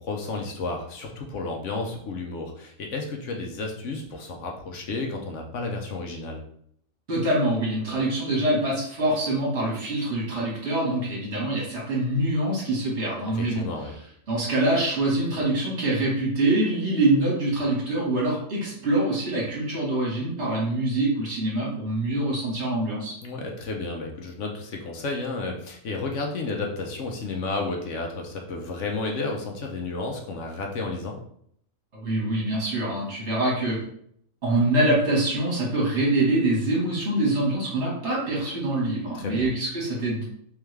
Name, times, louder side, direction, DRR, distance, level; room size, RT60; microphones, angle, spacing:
voice 1, 0.0-6.4 13.3-13.9 23.2-31.2 39.1-39.5, left 3 dB, 65° left, 2 dB, 1.0 m, -32 dB
voice 2, 7.1-13.9 14.3-23.1 31.9-33.8 34.4-40.2, right 1 dB, 55° right, -4 dB, 1.8 m, -25 dB
3.6 x 3.4 x 3.2 m, 0.67 s
omnidirectional pair, 1.4 m